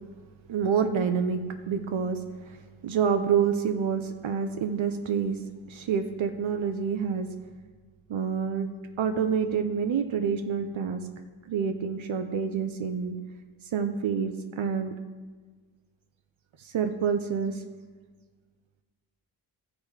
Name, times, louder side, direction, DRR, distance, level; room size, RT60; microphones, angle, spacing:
voice 1, 0.5-2.6 2.8-5.4 5.7-7.3 8.1-8.7 9.0-11.1 11.5-13.1 13.7-14.9 16.6-17.6, right 7 dB, 70° right, 6 dB, 0.8 m, -27 dB
13.0 x 5.0 x 4.9 m, 1.4 s
cardioid pair, 55°, 49 cm